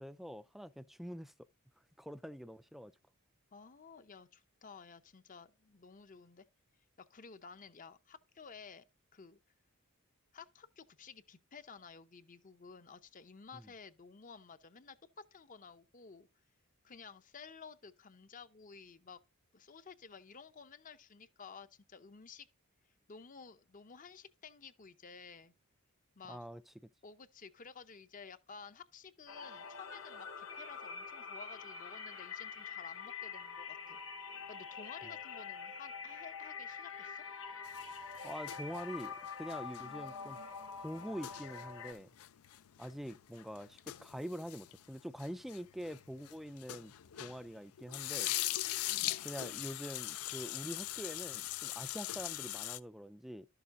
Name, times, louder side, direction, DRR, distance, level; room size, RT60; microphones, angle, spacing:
voice 1, 0.0-1.3 2.0-2.9 13.5-13.6 26.3-26.6 38.2-40.4 40.8-42.1 42.8-46.9 47.2-48.3 49.2-53.5, equal, ahead, 0.3 m, -45 dB
voice 2, 3.5-6.5 7.1-8.8 9.1-9.4 10.3-15.0 15.3-16.3 16.8-19.2 19.5-22.5 23.1-25.5 26.2-26.6 27.0-34.0 34.5-37.2, left 5 dB, 35° left, 0.7 m, -53 dB
sound 1, 29.3-41.9, left 6 dB, 60° left, 1.4 m, -45 dB
sound 2, 37.7-47.5 47.8-52.8, left 15 dB, 80° left, 0.5 m, -41 dB
12.0 x 6.9 x 2.6 m
head